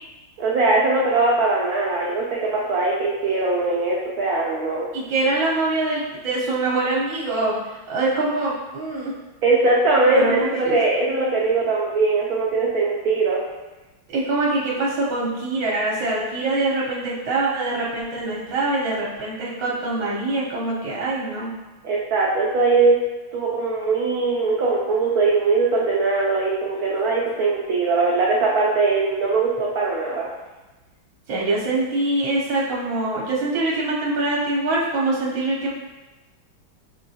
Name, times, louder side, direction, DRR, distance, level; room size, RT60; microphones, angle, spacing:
voice 1, 0.4-4.9 9.4-13.4 21.8-23.0 23.3-30.3, right 3 dB, 90° right, -4 dB, 0.8 m, -21 dB
voice 2, 4.9-7.5 7.9-9.1 10.1-10.7 14.1-21.5 31.3-35.7, right 2 dB, 65° right, -6 dB, 1.4 m, -24 dB
5.6 x 2.7 x 2.7 m, 1.1 s
omnidirectional pair, 2.3 m